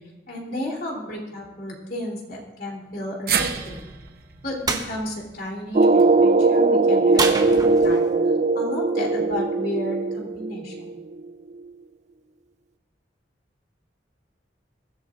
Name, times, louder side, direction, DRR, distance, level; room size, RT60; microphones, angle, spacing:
voice 1, 0.3-3.8 4.4-8.1 8.5-11.0, left 1 dB, 55° left, -2 dB, 3.3 m, -32 dB
sound 1, 3.3-7.5 7.9-8.0 9.1-9.2, right 7 dB, 55° right, 0.9 m, -32 dB
sound 2, 4.7-4.9 7.2-8.1, right 3 dB, 20° right, 1.0 m, -26 dB
sound 3, 5.7-11.3, right 3 dB, 40° right, 0.4 m, -20 dB
22.5 x 13.0 x 2.5 m, 1.1 s
head